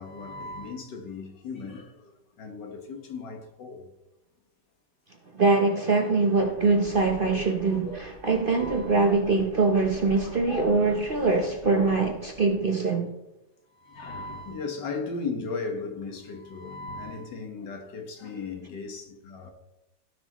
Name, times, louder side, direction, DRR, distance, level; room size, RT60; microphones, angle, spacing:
voice 1, 0.0-3.9 8.5-8.9 10.7-10.9 11.9-12.1 13.8-19.5, left 4 dB, 70° left, 2.0 m, -37 dB
voice 2, 5.3-13.1, right 3 dB, 50° right, 0.6 m, -23 dB
sound 1, 6.4-12.6, left 2 dB, 40° left, 3.1 m, -43 dB
16.5 x 6.2 x 3.0 m
omnidirectional pair, 2.0 m